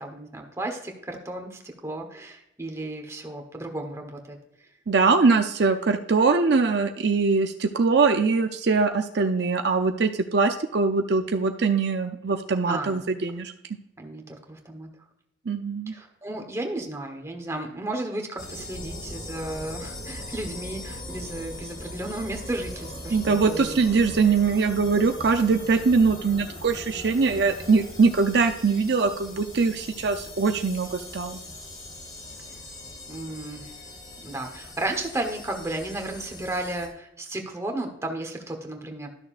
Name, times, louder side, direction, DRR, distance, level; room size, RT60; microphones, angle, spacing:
voice 1, 0.0-4.4 12.7-13.0 14.0-14.9 15.9-23.8 33.1-33.7 34.2-39.1, right 2 dB, 15° right, 2 dB, 1.2 m, -34 dB
voice 2, 4.9-13.5 15.5-15.9 23.1-31.4, right 4 dB, 60° right, 6 dB, 0.6 m, -22 dB
sound 1, 18.4-36.9, left 1 dB, 40° left, 2.1 m, -40 dB
12.5 x 6.5 x 2.5 m, 0.81 s
head